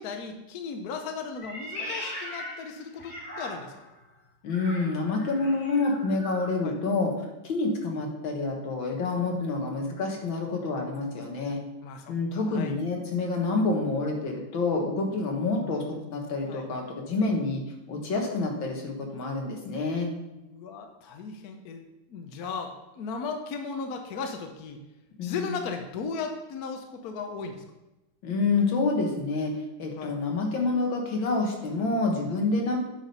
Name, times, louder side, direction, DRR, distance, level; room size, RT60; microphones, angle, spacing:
voice 1, 0.0-3.7 6.6-6.7 7.9-8.0 11.8-12.8 15.6-16.0 16.4-16.7 20.4-21.8 22.1-24.8 25.2-27.6 30.0-30.1, left 5 dB, 60° left, 5 dB, 1.2 m, -36 dB
Meow, 1.4-3.9 4.5-6.5, left 1 dB, 20° left, 2.2 m, -39 dB
voice 2, 4.4-7.1 7.4-11.6 12.1-15.8 16.1-17.6 17.9-20.1 25.2-25.6 28.2-29.5 29.8-32.8, left 3 dB, 85° left, 1 dB, 2.2 m, -28 dB
8.7 x 5.0 x 5.4 m, 0.99 s
omnidirectional pair, 2.1 m